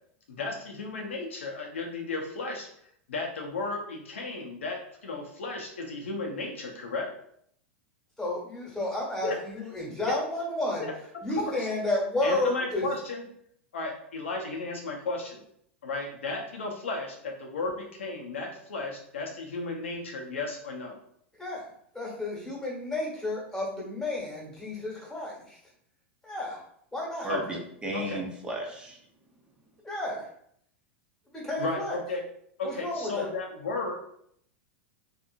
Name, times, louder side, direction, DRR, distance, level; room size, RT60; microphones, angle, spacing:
voice 1, 0.3-2.7 3.1-7.1 9.2-9.4 10.0-10.2 10.8-10.9 11.4-11.7 12.2-13.2 13.7-15.4 15.8-21.0 27.3-27.6 27.9-28.2 31.6-32.2 32.6-34.0, left 3 dB, 85° left, 1 dB, 0.7 m, -34 dB
voice 2, 8.2-10.9 11.2-12.8 21.4-21.6 21.9-25.6 26.2-26.6 26.9-27.3 29.8-30.3 31.3-32.0 32.6-33.3, left 2 dB, 10° left, -5 dB, 1.3 m, -31 dB
voice 3, 27.2-29.0, right 1 dB, 15° right, 0 dB, 0.7 m, -34 dB
2.8 x 2.5 x 2.5 m, 0.68 s
hypercardioid pair, 100°, 6 cm